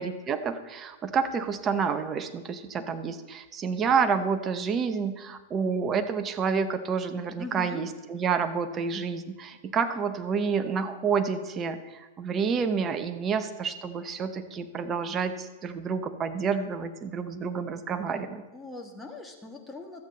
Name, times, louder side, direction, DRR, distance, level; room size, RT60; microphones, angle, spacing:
voice 1, 0.0-18.4, right 6 dB, 25° right, 9 dB, 0.9 m, -29 dB
voice 2, 7.4-7.8 18.5-20.0, left 3 dB, 10° left, 2 dB, 1.6 m, -40 dB
12.5 x 8.3 x 3.9 m, 1.2 s
figure-of-eight pair, 100°, 0 cm